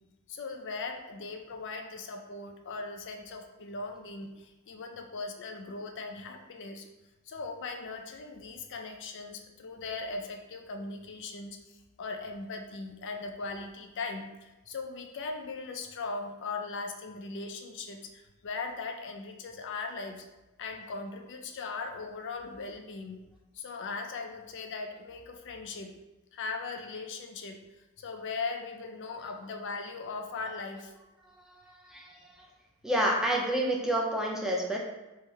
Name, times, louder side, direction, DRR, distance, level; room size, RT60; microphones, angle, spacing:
voice 1, 0.3-6.9 7.2-20.2 20.6-23.2 23.5-25.9 26.3-27.6 28.0-30.9, left 4 dB, 55° left, 5 dB, 0.5 m, -39 dB
voice 2, 32.8-34.8, right 1 dB, ahead, -2 dB, 0.6 m, -28 dB
3.5 x 3.2 x 4.5 m, 1.0 s
head